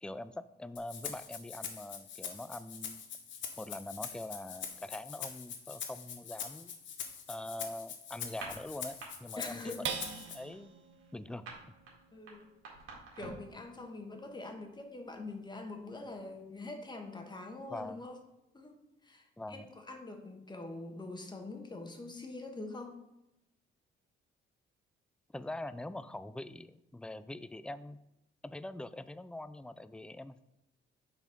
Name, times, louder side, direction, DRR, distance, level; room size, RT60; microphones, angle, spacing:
voice 1, 0.0-3.0 3.6-6.8 7.3-10.7 11.1-11.5 17.7-18.0 19.4-19.7 25.3-28.0 28.4-30.5, left 1 dB, 5° left, 14 dB, 0.3 m, -43 dB
Rattle (instrument), 0.8-10.4, left 7 dB, 70° left, 1.0 m, -44 dB
sound 1, 8.3-9.1 9.4-9.7 10.0-13.5, right 3 dB, 90° right, 1.9 m, -47 dB
voice 2, 9.4-9.9 12.1-12.5 13.2-18.2 18.5-23.0, left 2 dB, 20° left, 4 dB, 1.2 m, -44 dB
sound 2, 9.8-16.5 17.0-17.1 17.5-18.0, right 7 dB, 70° right, 0.8 m, -47 dB
7.2 x 4.1 x 5.3 m, 0.90 s
cardioid pair, 90°, 20 cm